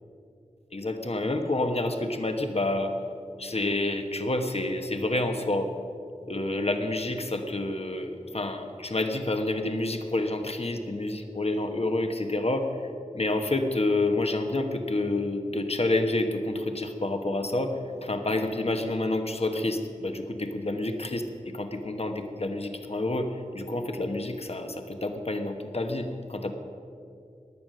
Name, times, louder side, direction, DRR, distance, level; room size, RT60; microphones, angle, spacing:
voice 1, 0.7-2.9 3.4-5.7 6.3-12.9 13.1-26.5, left 2 dB, 50° left, 5 dB, 1.2 m, -28 dB
16.5 x 10.5 x 6.5 m, 2.5 s
wide cardioid pair, 50°, 13 cm